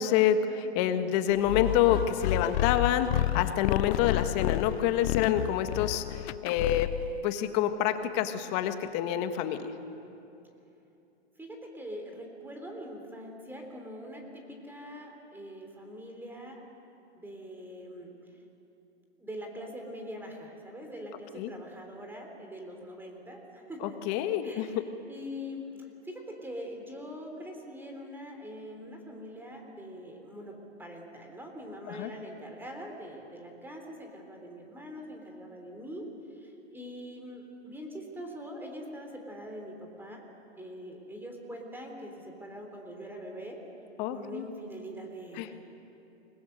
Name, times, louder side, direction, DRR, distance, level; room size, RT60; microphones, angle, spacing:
voice 1, 0.0-6.9 7.2-9.6 21.3-21.5 24.1-24.7 31.9-32.1 44.0-44.4 45.4-45.5, left 10 dB, 40° left, 8 dB, 1.6 m, -27 dB
sound 1, 1.5-7.2, left 15 dB, 65° left, 0.5 m, -31 dB
voice 2, 11.4-16.6 17.2-18.2 19.2-24.0 24.4-36.0 36.4-40.2 40.5-43.6 44.1-45.5, equal, 5° right, 2 dB, 3.4 m, -43 dB
29.0 x 21.5 x 6.7 m, 2.8 s
hypercardioid pair, 135°, 35 cm